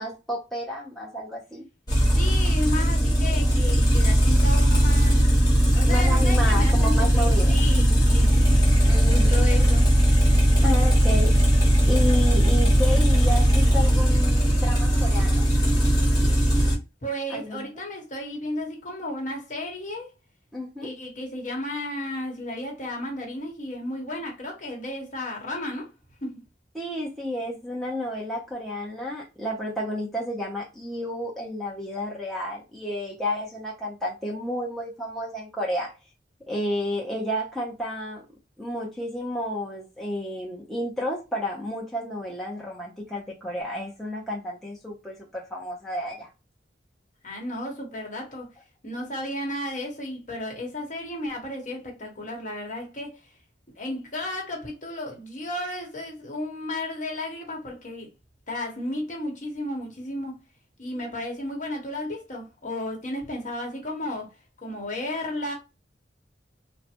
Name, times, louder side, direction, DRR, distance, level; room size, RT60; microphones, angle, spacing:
voice 1, 0.0-1.6 5.9-7.5 8.9-9.4 10.6-11.3 11.6-15.5 17.3-17.7 20.5-20.9 26.7-35.9 36.5-38.2 38.6-46.3, left 1 dB, ahead, 0.6 m, -31 dB
sound 1, 1.9-16.7, equal, 20° left, 1.1 m, -19 dB
voice 2, 2.1-5.4 5.7-9.9 17.0-20.1 20.8-25.9 26.2-26.4 47.2-48.5 48.8-53.3 53.7-58.1 58.5-60.4 60.8-65.5, left 1 dB, 40° left, 1.1 m, -33 dB
3.2 x 2.1 x 2.9 m
head